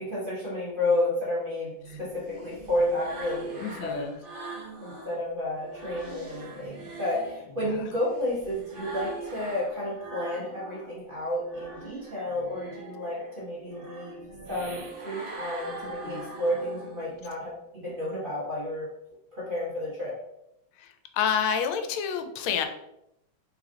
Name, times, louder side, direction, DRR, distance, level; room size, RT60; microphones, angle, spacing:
voice 1, 0.0-4.1 4.8-14.2 14.5-18.9 19.3-20.2, left 1 dB, 30° right, -7 dB, 1.1 m, -31 dB
sound 1, 1.8-5.2 5.6-10.9 11.3-17.2, right 2 dB, 65° right, 0.5 m, -42 dB
voice 2, 3.6-4.2 7.6-7.8 16.0-16.3 20.8-22.7, left 7 dB, 90° left, 6 dB, 1.4 m, -29 dB
3.6 x 3.3 x 3.6 m, 0.82 s
omnidirectional pair, 2.2 m